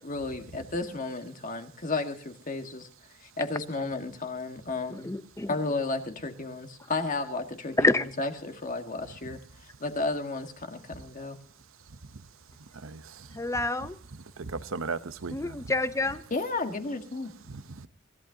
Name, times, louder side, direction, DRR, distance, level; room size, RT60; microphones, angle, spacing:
voice 1, 0.0-2.9 3.2-5.1 5.5-7.9 8.2-9.4 9.8-11.4 16.3-17.3, left 3 dB, 40° left, 1.6 m, -33 dB
voice 2, 4.9-5.6 7.8-8.1 13.3-14.0 15.3-16.2, left 2 dB, 15° left, 0.7 m, -27 dB
voice 3, 12.8-13.4 14.4-15.6 17.5-17.9, right 4 dB, 85° right, 0.8 m, -37 dB
25.0 x 14.5 x 2.8 m
head